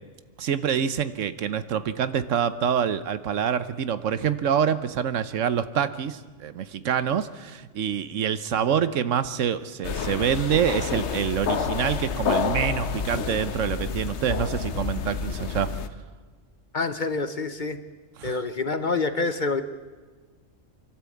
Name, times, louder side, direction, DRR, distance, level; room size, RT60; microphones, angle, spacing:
voice 1, 0.4-15.7 18.2-18.4, right 8 dB, 75° right, 13 dB, 1.2 m, -26 dB
sound 1, 9.8-15.9, left 6 dB, 60° left, 1.2 m, -29 dB
voice 2, 16.7-17.8 18.2-19.6, left 3 dB, 40° left, 11 dB, 0.9 m, -27 dB
24.5 x 12.5 x 8.4 m, 1.4 s
omnidirectional pair, 1.3 m